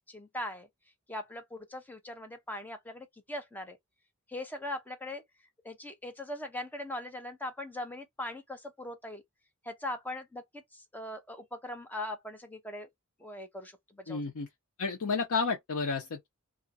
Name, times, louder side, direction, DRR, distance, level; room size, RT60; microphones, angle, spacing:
voice 1, 0.1-0.7 1.1-3.8 4.3-5.2 5.6-9.2 9.6-12.9 13.2-14.2, left 1 dB, 10° left, 0.7 m, -40 dB
voice 2, 14.1-14.5 14.8-16.3, left 4 dB, 85° left, 0.6 m, -31 dB
2.7 x 2.5 x 2.2 m
head